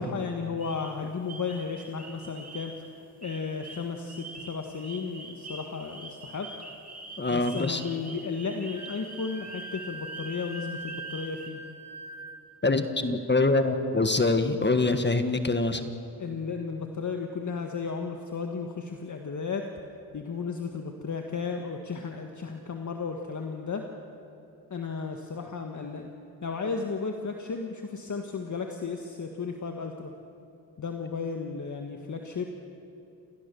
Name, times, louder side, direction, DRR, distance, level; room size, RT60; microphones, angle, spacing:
voice 1, 0.0-2.9 3.2-6.5 7.3-11.6 16.2-19.7 20.1-23.8 24.7-26.1 26.4-30.1 30.8-32.4, left 5 dB, 45° left, 3 dB, 1.6 m, -34 dB
sound 1, 0.6-2.9 3.2-11.5, right 2 dB, 20° right, 2.8 m, -45 dB
voice 2, 7.2-7.8 12.6-15.8, left 3 dB, 25° left, 8 dB, 1.4 m, -24 dB
Wind instrument woodwind instrument, 8.7-12.4, right 2 dB, 50° right, 3.7 m, -42 dB
27.5 x 18.0 x 7.0 m, 2.7 s
cardioid pair, 75°, 42 cm